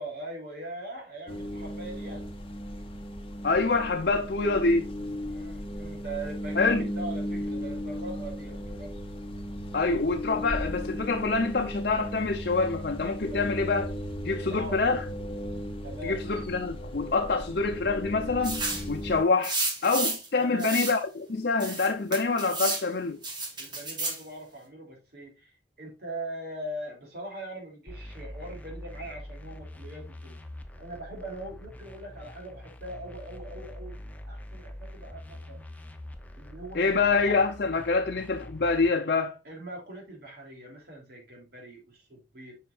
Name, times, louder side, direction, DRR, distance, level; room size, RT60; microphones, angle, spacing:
voice 1, 0.0-2.3 5.3-8.9 13.3-13.4 14.5-15.0 15.8-16.2 20.4-20.8 23.6-30.4 30.8-35.6 36.4-37.2 37.8-38.0 39.4-42.6, right 1 dB, 60° right, 3.1 m, -41 dB
sound 1, 1.3-19.2, equal, 30° left, 1.0 m, -36 dB
voice 2, 3.4-4.9 6.6-6.9 9.7-13.9 14.2-15.0 16.0-18.6 18.9-23.2 36.7-39.4, left 4 dB, 60° left, 0.7 m, -26 dB
sound 2, 18.4-18.9 19.4-20.3 20.6-21.0 21.6-22.9 23.2-24.2, right 2 dB, 25° right, 1.8 m, -31 dB
sound 3, 27.9-38.9, left 1 dB, 10° left, 0.7 m, -44 dB
7.3 x 5.7 x 2.5 m
head